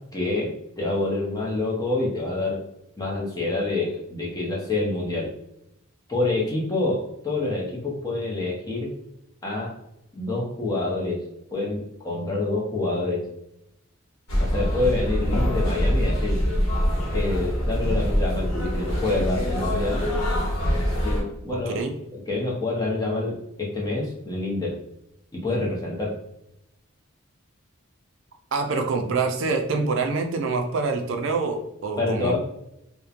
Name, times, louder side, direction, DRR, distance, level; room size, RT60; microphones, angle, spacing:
voice 1, 0.1-0.5 0.8-2.6 3.0-5.3 6.1-8.9 9.4-9.7 10.1-11.2 11.5-13.2 14.4-16.4 17.1-20.0 21.0-21.8 22.1-24.8 25.3-26.1 32.0-32.4, left 2 dB, 15° left, -3 dB, 0.5 m, -27 dB
sound 1, 14.3-21.2, equal, 80° left, 0.9 m, -24 dB
voice 2, 21.5-22.0 28.5-32.3, right 4 dB, 60° right, 4 dB, 0.3 m, -26 dB
3.0 x 2.1 x 2.4 m, 0.82 s
head